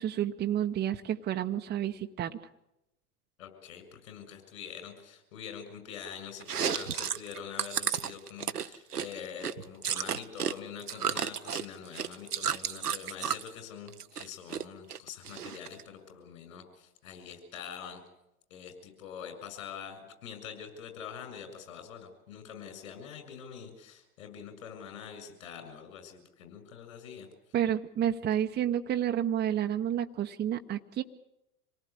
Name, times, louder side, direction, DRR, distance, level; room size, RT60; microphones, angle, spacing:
voice 1, 0.0-2.4 27.5-31.0, right 10 dB, 20° right, 5 dB, 0.9 m, -30 dB
voice 2, 3.4-18.0 18.5-27.3, left 7 dB, 60° left, 7 dB, 7.2 m, -45 dB
Chewing mastication, 6.4-10.5 10.8-13.5 13.9-14.6 14.9-15.8, right 8 dB, 80° right, 1.0 m, -32 dB
26.5 x 18.5 x 8.4 m, 0.88 s
figure-of-eight pair, 90°, 46 cm